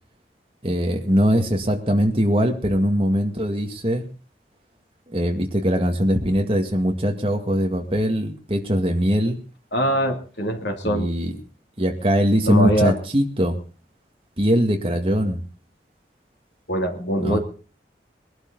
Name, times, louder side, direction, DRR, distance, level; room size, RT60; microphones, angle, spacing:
voice 1, 0.6-4.1 5.1-9.4 10.8-11.3 11.8-13.6 14.4-15.4 17.2-17.4, equal, 30° right, 3 dB, 2.1 m, -21 dB
voice 2, 9.7-11.1 12.5-12.9 16.7-17.4, equal, 75° left, 3 dB, 3.0 m, -22 dB
21.5 x 11.5 x 3.9 m, 0.37 s
head